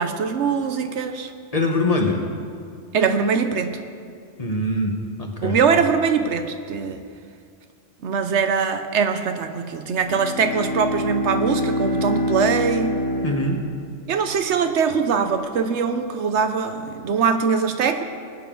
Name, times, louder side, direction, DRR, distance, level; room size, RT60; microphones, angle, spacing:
voice 1, 0.0-1.3 2.9-3.8 5.4-7.0 8.0-13.0 14.1-18.0, right 6 dB, 75° right, 8 dB, 1.0 m, -22 dB
voice 2, 1.5-2.2 4.4-5.6 13.2-13.6, left 2 dB, 35° left, 1 dB, 1.3 m, -23 dB
Bowed string instrument, 9.9-14.3, left 1 dB, 55° left, 1.5 m, -26 dB
19.5 x 9.2 x 3.8 m, 2.2 s
omnidirectional pair, 1.2 m